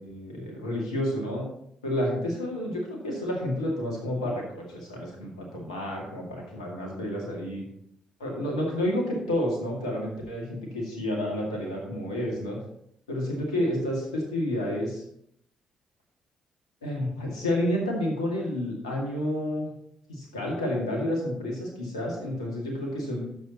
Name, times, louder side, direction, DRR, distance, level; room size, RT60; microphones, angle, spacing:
voice 1, 0.0-1.5 1.8-7.6 8.2-12.6 13.1-15.0 16.8-19.7 20.1-23.2, left 1 dB, 85° left, -1 dB, 2.1 m, -30 dB
13.0 x 7.4 x 3.0 m, 0.70 s
figure-of-eight pair, 40°, 3 cm